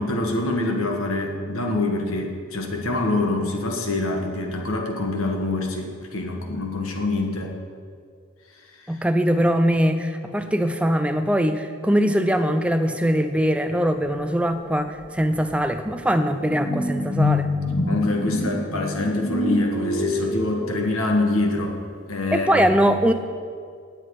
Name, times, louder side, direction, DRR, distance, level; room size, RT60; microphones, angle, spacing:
voice 1, 0.0-7.5 8.8-9.0 17.8-21.8 22.1-22.7, left 2 dB, 85° left, 2 dB, 1.5 m, -25 dB
voice 2, 8.9-17.5 22.3-23.1, equal, 5° right, 8 dB, 0.5 m, -21 dB
sound 1, 14.5-14.6 15.0-21.1, left 1 dB, 45° left, 1.3 m, -26 dB
18.0 x 7.7 x 4.8 m, 2.1 s
head